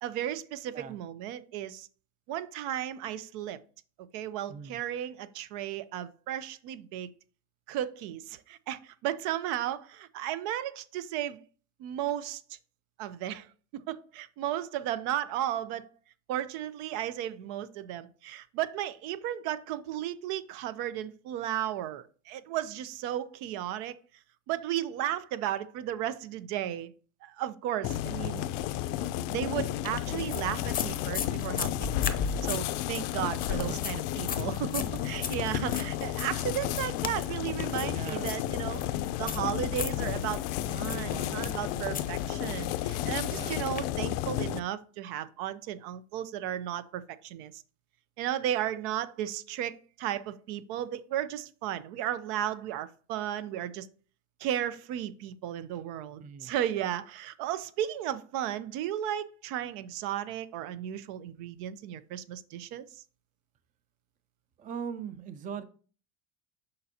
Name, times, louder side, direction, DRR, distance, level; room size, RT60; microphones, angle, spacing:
voice 1, 0.0-1.9 2.3-3.6 4.1-7.1 7.7-11.4 11.8-12.4 13.0-13.5 13.9-15.9 16.3-23.9 24.5-26.9 27.2-28.4 29.3-32.1 32.4-38.8 39.2-40.4 40.7-47.6 48.2-53.9 54.4-62.8, right 11 dB, 70° right, 0.7 m, -34 dB
sound 1, 27.8-44.6, left 13 dB, 75° left, 0.5 m, -32 dB
sound 2, 29.8-43.8, left 6 dB, 25° left, 0.6 m, -39 dB
voice 2, 37.9-38.3 40.9-41.4 41.8-42.0 43.1-43.6 56.2-56.5 64.6-65.6, right 6 dB, 20° right, 0.4 m, -41 dB
6.8 x 5.2 x 2.8 m
supercardioid pair, 125°, 38 cm